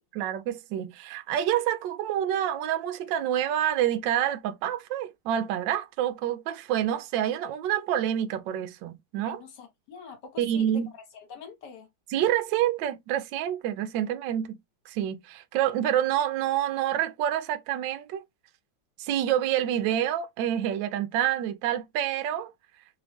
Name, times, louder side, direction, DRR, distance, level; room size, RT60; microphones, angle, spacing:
voice 1, 0.1-9.4 10.4-10.9 12.1-14.6 14.9-18.2 19.0-22.5, right 11 dB, 70° right, 1.2 m, -27 dB
voice 2, 9.2-11.9, left 5 dB, 60° left, 1.5 m, -45 dB
3.4 x 3.2 x 3.0 m
omnidirectional pair, 2.2 m